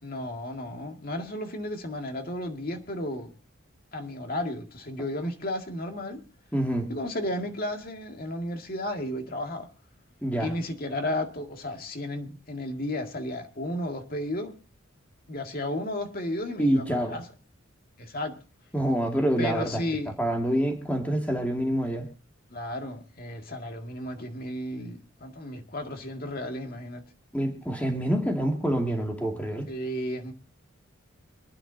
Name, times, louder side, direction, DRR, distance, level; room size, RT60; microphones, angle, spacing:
voice 1, 0.0-3.3 3.9-6.2 6.9-9.7 10.4-14.6 15.3-17.2 18.0-18.4 19.4-20.1 22.5-27.0 29.7-30.3, left 1 dB, 45° left, 2.0 m, -33 dB
voice 2, 6.5-6.9 10.2-10.5 16.6-17.2 18.7-19.8 20.2-22.1 27.3-29.7, right 1 dB, 5° left, 2.3 m, -26 dB
26.5 x 10.0 x 2.7 m
head